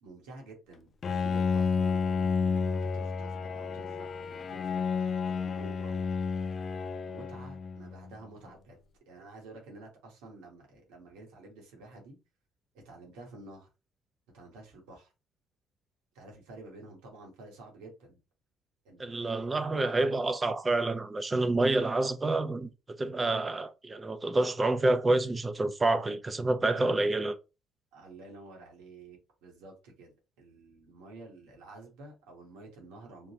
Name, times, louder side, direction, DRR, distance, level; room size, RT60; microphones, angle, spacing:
voice 1, 0.0-6.0 7.1-8.8 9.1-12.2 12.7-13.7 14.3-15.1 16.1-18.2 18.8-19.9 27.9-30.1 30.4-33.3, right 2 dB, 90° right, 1.4 m, -50 dB
Bowed string instrument, 1.0-8.1, left 5 dB, 45° left, 0.4 m, -31 dB
voice 2, 19.0-27.3, right 2 dB, 25° right, 0.5 m, -28 dB
3.7 x 2.1 x 2.8 m
supercardioid pair, 80°, 0 cm